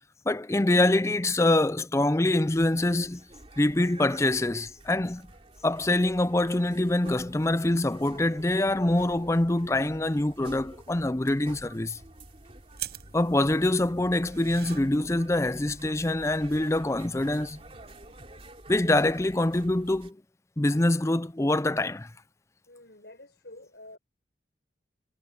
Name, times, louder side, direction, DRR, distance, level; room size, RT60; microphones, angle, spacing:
voice 1, 0.3-3.2 3.6-5.3 5.6-12.0 13.1-17.6 18.7-20.2 20.6-22.1, left 1 dB, 15° left, 0.5 m, -25 dB
sound 1, 2.4-20.1, right 1 dB, 30° right, 3.5 m, -49 dB
sound 2, 12.7-18.5, right 10 dB, 60° right, 6.8 m, -46 dB
voice 2, 22.7-24.0, left 1 dB, 65° left, 5.7 m, -48 dB
head